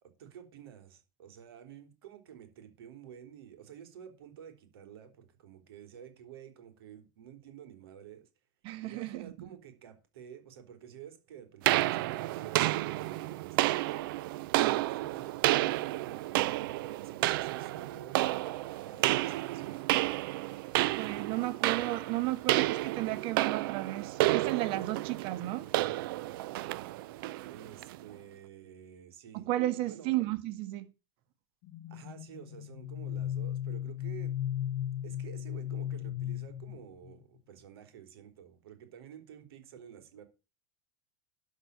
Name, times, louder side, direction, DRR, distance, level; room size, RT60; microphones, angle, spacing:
voice 1, 0.0-8.3 8.8-14.1 14.6-15.5 16.0-19.8 27.5-29.5 29.8-30.1 31.9-34.4 35.0-40.2, right 9 dB, 80° right, 3.7 m, -50 dB
voice 2, 8.6-9.3 14.6-14.8 20.8-25.7 29.3-30.9, right 16 dB, 45° right, 1.6 m, -34 dB
sound 1, 11.6-28.0, right 17 dB, 65° right, 0.7 m, -31 dB
sound 2, 31.6-37.2, left 11 dB, 50° left, 0.8 m, -36 dB
12.0 x 5.1 x 6.8 m
supercardioid pair, 140°, 12 cm